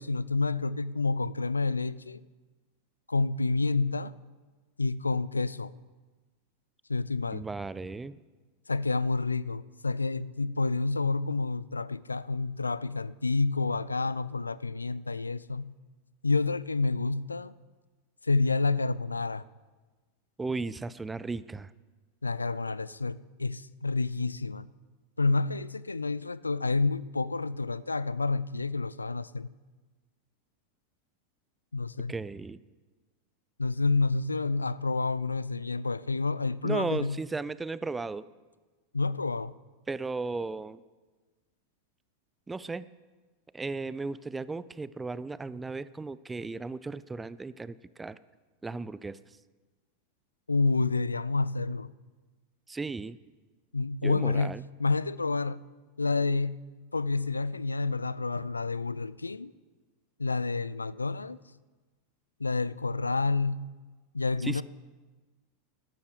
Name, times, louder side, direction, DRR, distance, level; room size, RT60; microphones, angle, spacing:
voice 1, 0.0-2.2 3.1-4.1 4.8-5.7 6.9-7.4 8.7-15.7 16.2-17.5 18.2-19.4 22.2-24.7 25.2-29.5 31.7-32.1 33.6-37.2 38.9-39.5 50.5-51.9 53.7-54.5 54.8-55.6 56.0-56.6 56.9-59.5 60.2-61.4 62.4-63.7 64.1-64.6, left 3 dB, 90° left, 19 dB, 0.4 m, -29 dB
voice 2, 7.3-8.2 20.4-21.7 32.1-32.6 36.6-38.2 39.9-40.8 42.5-42.9 43.5-48.2 48.6-49.2 52.7-53.2 54.0-54.6 64.4-64.6, right 3 dB, 15° right, 17 dB, 0.5 m, -35 dB
12.5 x 12.0 x 6.8 m, 1.3 s
figure-of-eight pair, 90°, 0 cm